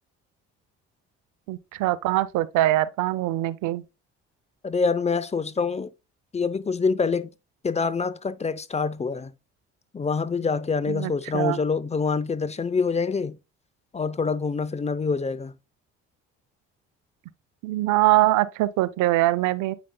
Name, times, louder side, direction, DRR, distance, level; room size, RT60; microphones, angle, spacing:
voice 1, 1.5-3.8 10.9-11.6 17.6-19.7, right 16 dB, 75° right, 0.6 m, -23 dB
voice 2, 4.6-5.9 6.3-7.3 7.6-9.3 9.9-13.4 13.9-15.5, left 5 dB, 20° left, 0.6 m, -26 dB
8.7 x 5.2 x 2.2 m
supercardioid pair, 65°, 30 cm